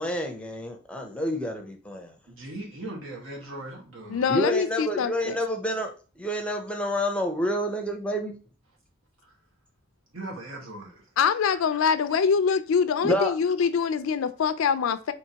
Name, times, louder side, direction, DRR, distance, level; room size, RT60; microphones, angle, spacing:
voice 1, 0.0-2.1 4.3-8.4 13.0-13.3, equal, 5° left, 0.5 m, -28 dB
voice 2, 2.3-4.3 9.3-9.4 10.1-11.0 11.5-11.6, right 2 dB, 85° right, 1.5 m, -39 dB
voice 3, 4.1-5.4 11.2-15.1, left 6 dB, 85° left, 0.4 m, -24 dB
4.4 x 3.0 x 2.8 m
head